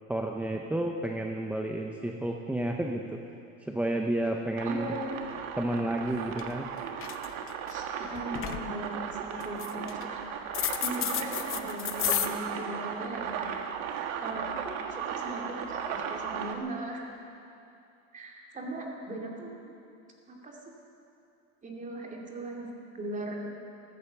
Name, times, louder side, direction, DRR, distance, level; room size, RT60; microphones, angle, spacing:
voice 1, 0.1-3.2 3.6-4.9 5.6-6.7, right 1 dB, 5° right, 2 dB, 0.5 m, -31 dB
voice 2, 4.6-5.2 7.7-10.2 10.6-13.8 14.2-17.1 18.1-19.7 20.3-20.6 21.6-23.5, right 1 dB, 20° right, -1 dB, 2.6 m, -39 dB
sound 1, 4.6-16.5, right 8 dB, 75° right, 1.5 m, -36 dB
sound 2, 6.0-6.1 6.4-6.7 6.9-7.7 8.1-8.7 9.4-10.0 10.5-12.3, left 12 dB, 35° left, 0.8 m, -31 dB
14.5 x 14.5 x 6.8 m, 2.6 s
supercardioid pair, 140°, 39 cm